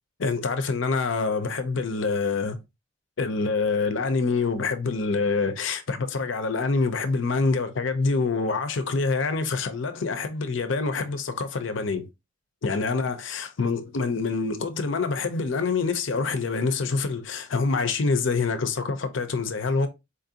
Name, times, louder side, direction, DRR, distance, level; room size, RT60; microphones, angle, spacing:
voice 1, 0.2-2.6 3.2-12.1 12.6-19.9, left 4 dB, 75° left, 0.6 m, -26 dB
4.2 x 2.5 x 2.7 m
head